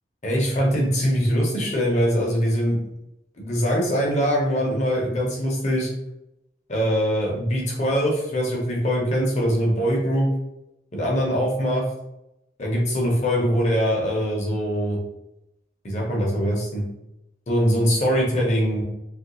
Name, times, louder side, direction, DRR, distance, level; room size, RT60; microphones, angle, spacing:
voice 1, 0.2-2.8 3.4-5.9 6.7-10.3 10.9-11.8 12.6-15.0 15.8-16.8 17.5-18.8, equal, 40° left, -2 dB, 0.8 m, -22 dB
3.1 x 2.5 x 3.0 m, 0.88 s
head